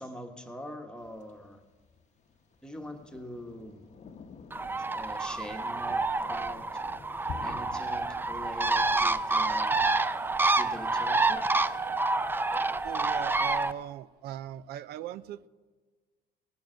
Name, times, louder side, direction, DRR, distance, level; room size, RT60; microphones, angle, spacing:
voice 1, 0.0-1.6 2.6-3.8 4.9-6.8 7.4-10.1 10.6-11.4, left 1 dB, 5° left, 4 dB, 1.3 m, -43 dB
Thunder, 1.0-12.9, left 6 dB, 45° left, 0.8 m, -51 dB
Bird, 4.5-13.7, right 3 dB, 10° right, 0.4 m, -28 dB
voice 2, 12.8-15.5, right 11 dB, 70° right, 18 dB, 0.4 m, -39 dB
18.5 x 7.1 x 6.3 m, 1.4 s
cardioid pair, 110°, 17 cm